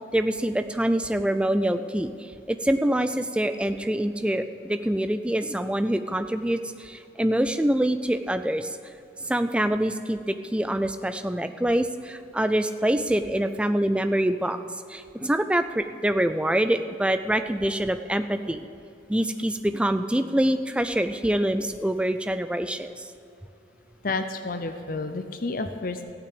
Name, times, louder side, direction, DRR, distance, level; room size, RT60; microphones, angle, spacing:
voice 1, 0.1-2.1 2.5-8.8 9.2-14.6 14.9-18.7 19.1-23.1, right 1 dB, 5° right, 9 dB, 0.3 m, -25 dB
voice 2, 24.0-26.1, left 3 dB, 50° left, 8 dB, 0.6 m, -30 dB
14.0 x 6.0 x 8.6 m, 2.7 s
head